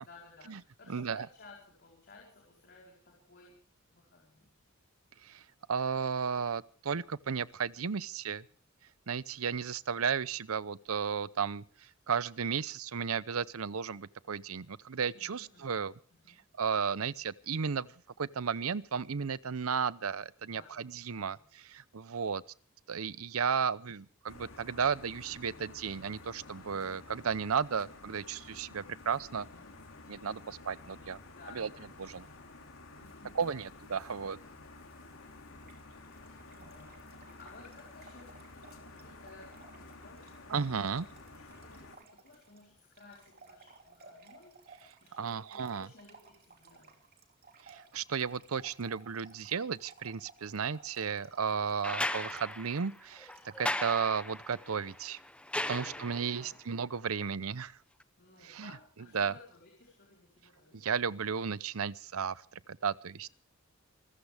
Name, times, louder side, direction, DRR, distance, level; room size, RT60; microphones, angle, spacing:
voice 1, 0.0-3.6 3.9-4.5 15.1-15.8 16.1-16.4 20.4-21.4 29.3-29.8 31.3-32.2 32.9-33.7 36.5-47.0 55.7-56.6 58.2-60.9, left 3 dB, 50° left, 4.7 m, -57 dB
voice 2, 0.9-1.3 5.2-5.4 5.7-8.4 9.1-15.9 16.6-17.9 18.2-21.4 21.6-22.4 22.9-29.5 30.1-31.2 31.5-31.7 32.0-32.2 33.4-34.4 40.5-41.1 45.2-45.9 47.6-53.3 53.6-55.2 55.7-57.8 58.4-58.7 59.1-59.3 60.7-63.3, right 6 dB, 85° right, 0.7 m, -34 dB
sound 1, 24.3-42.0, left 2 dB, 75° left, 3.5 m, -52 dB
Trickle dribble / Fill (with liquid), 35.6-54.1, right 4 dB, 45° right, 3.1 m, -57 dB
sound 2, 51.8-56.5 58.0-58.1, left 1 dB, 5° left, 0.7 m, -37 dB
26.5 x 14.5 x 3.5 m
head